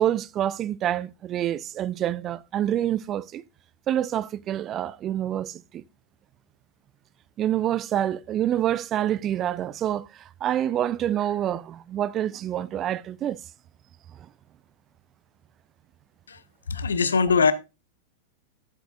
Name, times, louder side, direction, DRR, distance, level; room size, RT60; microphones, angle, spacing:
voice 1, 0.0-3.4 3.9-5.8 7.4-13.4, right 11 dB, 30° right, 0.3 m, -27 dB
voice 2, 16.7-17.5, left 5 dB, 70° left, 0.7 m, -21 dB
10.0 x 8.1 x 2.5 m
figure-of-eight pair, 90°, 0 cm